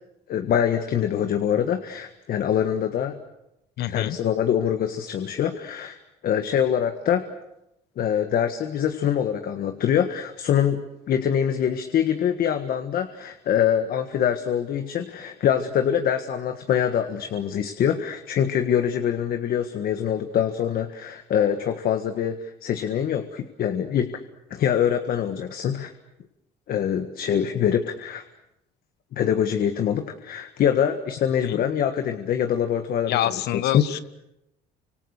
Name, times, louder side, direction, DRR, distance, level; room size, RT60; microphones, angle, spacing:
voice 1, 0.3-3.2 3.9-6.0 6.2-7.3 8.0-24.2 24.5-25.9 26.7-28.2 29.1-33.8, left 9 dB, 60° left, 7 dB, 1.7 m, -24 dB
voice 2, 3.8-4.2 31.4-31.6 33.1-34.0, left 13 dB, 75° left, 15 dB, 1.3 m, -26 dB
30.0 x 25.5 x 6.7 m, 0.86 s
cardioid pair, 110°, 17 cm